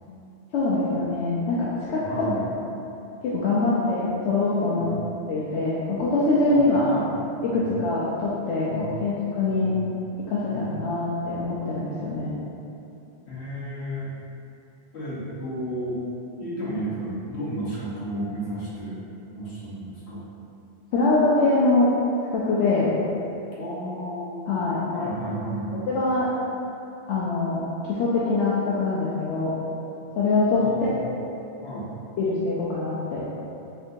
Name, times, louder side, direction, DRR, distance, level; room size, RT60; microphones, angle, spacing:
voice 1, 0.5-2.1 3.2-4.8 5.3-6.9 7.4-9.7 10.3-12.3 20.9-21.9 22.3-22.9 24.5-24.8 25.9-26.3 27.1-27.6 27.9-29.5 30.2-30.6 32.2-33.2, left 3 dB, 90° left, -7 dB, 0.9 m, -23 dB
voice 2, 1.9-2.5 4.7-5.0 6.5-7.0 7.5-7.7 8.6-8.9 9.4-10.0 10.5-10.7 13.3-14.1 14.9-16.0 16.4-19.0 19.3-20.2 23.6-24.5 24.9-25.9 30.6-31.0 31.6-31.8, right 1 dB, 70° left, -9 dB, 1.3 m, -32 dB
4.4 x 2.8 x 2.6 m, 2.8 s
omnidirectional pair, 1.1 m